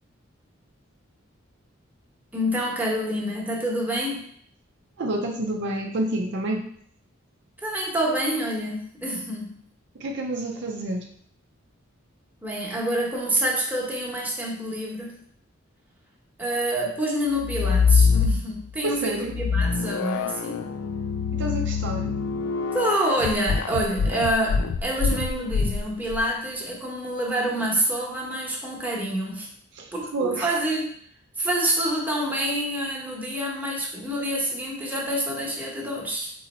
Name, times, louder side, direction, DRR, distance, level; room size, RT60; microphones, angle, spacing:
voice 1, 2.3-4.2 7.6-9.6 12.4-15.1 16.4-20.7 22.7-29.5 29.9-31.0 31.4-36.3, right 1 dB, 10° right, -3 dB, 0.9 m, -27 dB
voice 2, 5.0-6.7 9.9-11.1 18.8-19.3 21.3-22.1 29.8-30.5, right 1 dB, 60° right, 2 dB, 0.5 m, -29 dB
sound 1, 17.4-18.8 19.3-26.2, left 5 dB, 85° left, 0.3 m, -24 dB
3.9 x 3.1 x 4.2 m, 0.62 s
head